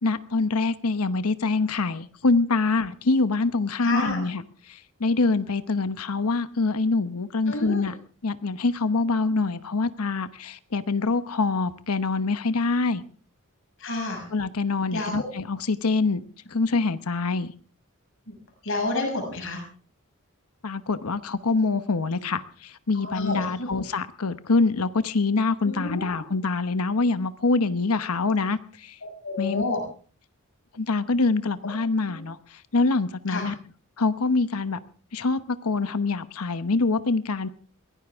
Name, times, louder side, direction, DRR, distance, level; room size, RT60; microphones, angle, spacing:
voice 1, 0.0-4.4 4.7-7.9 8.2-13.0 14.3-16.2 16.5-17.5 20.6-29.0 29.4-29.6 30.7-33.5 34.0-34.8 35.1-37.5, left 3 dB, 90° left, 13 dB, 1.0 m, -25 dB
voice 2, 3.8-4.2 7.5-7.9 13.8-14.2 14.9-15.2 18.3-18.4 18.6-19.6 23.0-23.7 25.6-26.2 29.0-29.8 32.0-32.2 33.3-33.5, left 2 dB, 60° left, 2 dB, 6.4 m, -30 dB
22.0 x 17.0 x 3.6 m, 0.42 s
head